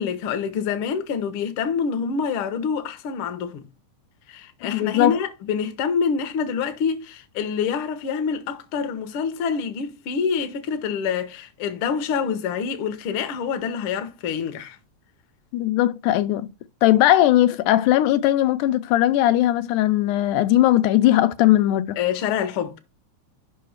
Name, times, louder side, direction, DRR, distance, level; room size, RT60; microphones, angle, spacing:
voice 1, 0.0-3.7 4.3-14.8 22.0-22.8, left 6 dB, 70° left, 1.3 m, -26 dB
voice 2, 4.6-5.2 15.5-16.5 16.8-22.0, left 14 dB, 90° left, 2.1 m, -19 dB
5.6 x 4.9 x 6.3 m
omnidirectional pair, 3.5 m